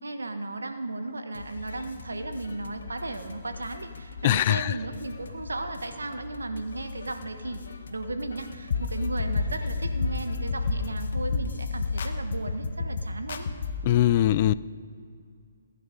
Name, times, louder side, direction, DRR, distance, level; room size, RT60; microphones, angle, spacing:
voice 1, 0.0-13.5, right 2 dB, 90° right, 1.4 m, -35 dB
sound 1, 1.3-11.9, left 4 dB, 75° left, 1.7 m, -43 dB
voice 2, 4.2-4.7 13.8-14.5, left 13 dB, 40° left, 0.4 m, -21 dB
sound 2, 8.7-14.0, left 4 dB, 60° left, 1.2 m, -30 dB
21.0 x 9.9 x 5.2 m
hypercardioid pair, 145°, 0 cm